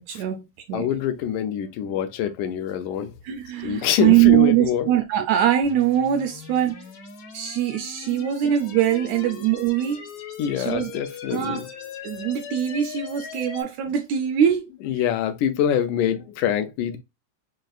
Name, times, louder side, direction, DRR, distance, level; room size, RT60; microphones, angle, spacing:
voice 1, 0.0-0.9 3.2-6.8 7.3-10.1 10.6-10.9 11.3-11.6 12.0-14.7, right 11 dB, 80° right, 1.6 m, -22 dB
voice 2, 0.7-3.2 3.6-4.9 8.1-8.2 10.4-11.7 14.8-17.0, left 9 dB, 85° left, 2.2 m, -25 dB
sound 1, 5.6-13.6, left 6 dB, 65° left, 1.3 m, -40 dB
6.3 x 2.5 x 2.3 m
omnidirectional pair, 3.5 m